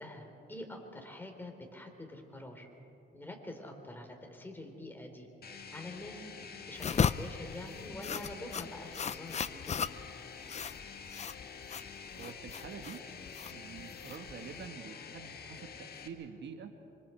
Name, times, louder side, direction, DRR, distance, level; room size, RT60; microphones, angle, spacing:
voice 1, 0.0-2.7 3.1-5.3 5.7-6.3 6.7-9.9, left 1 dB, 10° left, 3 dB, 3.7 m, -46 dB
sound 1, 5.4-16.1, left 6 dB, 50° left, 1.8 m, -48 dB
sound 2, 6.8-14.7, left 7 dB, 35° left, 0.5 m, -36 dB
voice 2, 12.1-13.0 13.5-16.7, right 7 dB, 65° right, 6 dB, 1.5 m, -47 dB
25.5 x 25.5 x 4.5 m, 2.7 s
cardioid pair, 90°, 20 cm